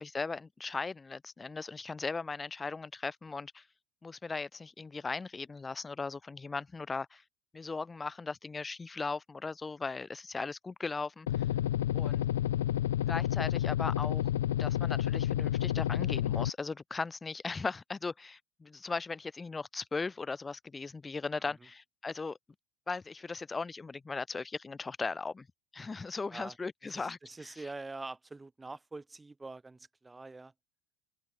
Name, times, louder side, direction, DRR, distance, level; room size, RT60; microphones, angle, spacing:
voice 1, 0.0-3.6 4.0-7.2 7.5-11.3 11.9-12.2 13.1-14.2 14.6-22.4 22.9-25.5 25.7-27.5, left 4 dB, 20° left, 6.3 m, -38 dB
sound 1, 11.3-16.5, left 12 dB, 90° left, 1.5 m, -30 dB
voice 2, 26.8-30.5, right 3 dB, 15° right, 8.0 m, -45 dB
open air
hypercardioid pair, 95°, 0 cm